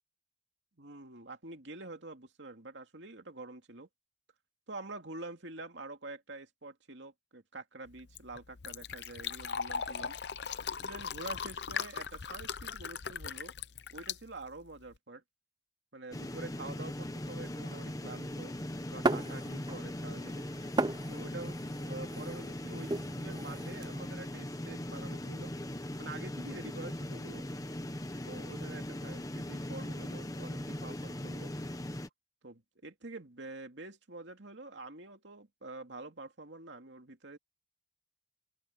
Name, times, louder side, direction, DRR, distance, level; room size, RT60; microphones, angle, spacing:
voice 1, 0.8-3.9 4.7-10.2 10.8-13.5 13.9-15.2 15.9-18.5 18.9-20.4 21.1-25.5 26.0-27.4 28.2-31.5 32.4-37.4, right 2 dB, 80° right, 2.5 m, -47 dB
Fill (with liquid), 7.9-15.0, left 6 dB, 65° left, 0.7 m, -39 dB
sound 1, 16.1-32.1, left 1 dB, 20° left, 1.2 m, -40 dB
sound 2, 19.0-19.9 20.2-23.9, right 2 dB, 25° right, 0.6 m, -35 dB
open air
head